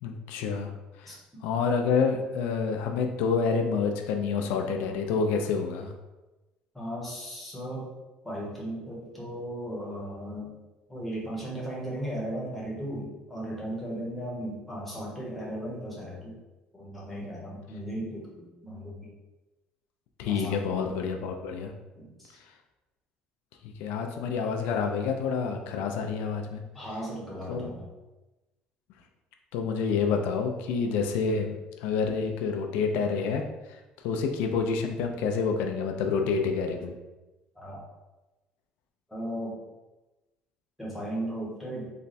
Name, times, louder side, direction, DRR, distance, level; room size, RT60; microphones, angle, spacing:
voice 1, 0.0-0.7 1.0-1.2 1.4-5.9 20.2-21.7 23.6-26.6 27.5-27.7 29.5-31.6 31.8-36.9, left 5 dB, 90° left, 4 dB, 0.4 m, -28 dB
voice 2, 6.7-7.9 8.2-10.5 10.9-16.3 16.7-19.1 20.2-20.9 22.0-22.4 26.7-27.9 37.6-37.8 39.1-39.6 40.8-41.9, right 1 dB, 5° left, -5 dB, 0.9 m, -36 dB
3.2 x 2.2 x 4.0 m, 1.1 s
cardioid pair, 155°, 3 cm